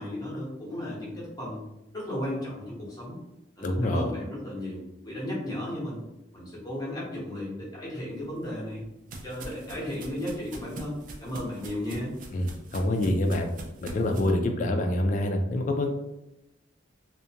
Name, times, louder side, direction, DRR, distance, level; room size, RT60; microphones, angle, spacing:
voice 1, 0.0-1.6 1.9-3.2 3.6-6.0 6.3-8.8 9.2-12.1, left 1 dB, 20° left, -7 dB, 0.9 m, -34 dB
voice 2, 3.6-4.1 12.3-13.5 13.8-15.9, left 1 dB, 40° left, 4 dB, 0.3 m, -26 dB
sound 1, 8.2-14.3, right 2 dB, 45° right, 0.3 m, -43 dB
2.4 x 2.1 x 2.7 m, 0.92 s
head